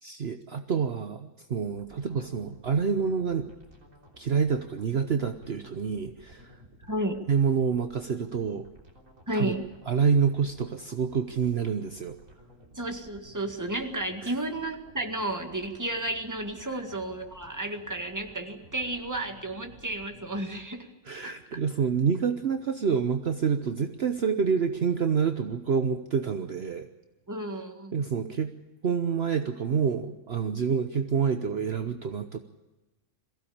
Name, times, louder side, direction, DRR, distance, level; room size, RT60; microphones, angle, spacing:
voice 1, 0.0-3.5 4.2-6.6 7.3-8.7 9.3-9.5 9.9-12.2 14.2-14.3 21.1-26.9 27.9-28.5 28.8-32.4, right 6 dB, 55° right, 8 dB, 1.1 m, -27 dB
sound 1, 1.7-20.6, right 1 dB, 80° right, 4.0 m, -55 dB
voice 2, 6.9-7.2 9.3-9.7 12.8-20.9 21.2-21.6 27.3-27.9, right 1 dB, 15° right, 5 dB, 1.9 m, -32 dB
22.5 x 16.0 x 8.8 m, 1.1 s
omnidirectional pair, 1.3 m